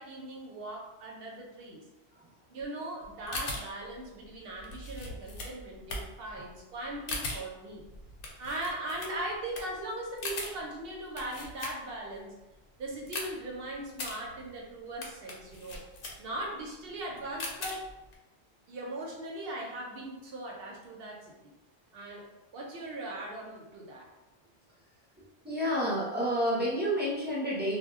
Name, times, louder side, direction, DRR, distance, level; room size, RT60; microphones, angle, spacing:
voice 1, 0.0-1.8 2.5-7.8 8.4-12.3 12.8-15.8 16.2-17.9 18.7-21.3 21.9-22.3 22.5-24.1, right 1 dB, 65° right, -2 dB, 0.8 m, -39 dB
sound 1, 3.0-12.2 12.5-18.2, left 2 dB, 65° left, 0.7 m, -41 dB
voice 2, 25.4-27.8, equal, 10° right, -7 dB, 0.5 m, -29 dB
2.1 x 2.1 x 3.5 m, 1.0 s
omnidirectional pair, 1.1 m